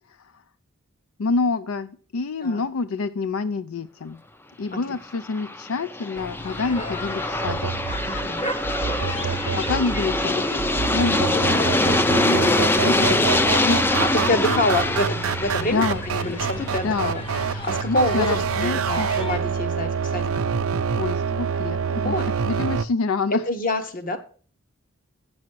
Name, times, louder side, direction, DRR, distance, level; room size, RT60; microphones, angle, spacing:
voice 1, 1.2-4.2 4.6-7.7 9.5-10.6 10.9-13.3 13.6-14.0 14.5-14.6 15.6-16.0 16.8-17.1 17.9-19.1 21.0-22.2 22.4-23.4, left 4 dB, 80° left, 13 dB, 0.4 m, -27 dB
Aircraft, 5.1-18.0, left 1 dB, 10° left, 0.4 m, -24 dB
sound 1, 6.1-19.4, left 1 dB, 25° left, 0.9 m, -35 dB
sound 2, 7.5-22.9, right 6 dB, 80° right, 0.5 m, -27 dB
voice 2, 8.0-8.5 12.3-12.5 13.9-20.3 22.0-22.3 23.3-24.2, left 1 dB, 40° left, 8 dB, 1.1 m, -27 dB
8.6 x 6.2 x 4.6 m, 0.41 s
head